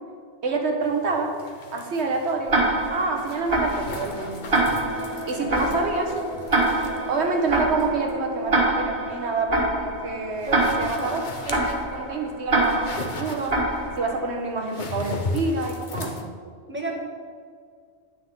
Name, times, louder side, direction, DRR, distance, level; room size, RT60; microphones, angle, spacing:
voice 1, 0.4-1.3 1.7-2.6 2.9-4.5 5.2-6.1 7.1-10.5 10.8-13.6 14.0-16.3, right 3 dB, 90° right, 3 dB, 1.4 m, -27 dB
sound 1, 0.8-16.2, left 2 dB, 50° left, 0.9 m, -38 dB
Tick-tock, 2.5-14.4, right 2 dB, 60° right, 1.9 m, -26 dB
sound 2, 3.8-12.4, equal, 85° left, 2.3 m, -38 dB
voice 2, 10.5-11.2 16.7-16.9, right 2 dB, 10° right, -1 dB, 1.4 m, -31 dB
9.5 x 8.6 x 3.6 m, 2.1 s
omnidirectional pair, 1.1 m